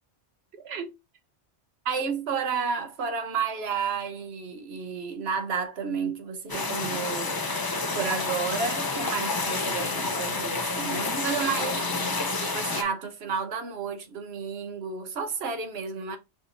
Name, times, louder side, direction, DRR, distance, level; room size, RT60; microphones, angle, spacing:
voice 1, 0.6-0.9 1.9-7.4 7.9-16.2, right 6 dB, 65° right, 1.0 m, -31 dB
sound 1, 6.5-12.8, left 3 dB, 35° left, 0.3 m, -29 dB
5.8 x 2.6 x 2.9 m
omnidirectional pair, 1.2 m